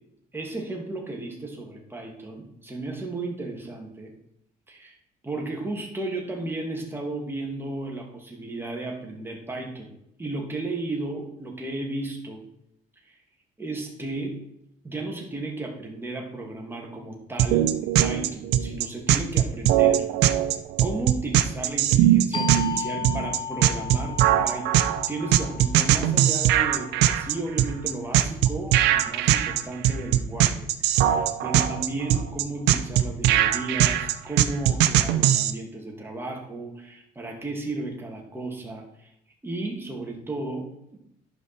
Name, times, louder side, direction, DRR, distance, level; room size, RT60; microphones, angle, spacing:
voice 1, 0.3-4.1 4.7-5.0 5.2-9.9 10.2-12.4 13.0-13.2 13.6-14.4 14.8-17.7 18.0-20.4 20.8-39.1 39.4-41.0, right 2 dB, 15° right, 0 dB, 2.3 m, -34 dB
sound 1, 17.4-35.5, right 12 dB, 85° right, 0.6 m, -20 dB
sound 2, 22.3-27.6, left 7 dB, 25° left, 1.1 m, -36 dB
11.5 x 5.4 x 4.3 m, 0.76 s
cardioid pair, 110°, 17 cm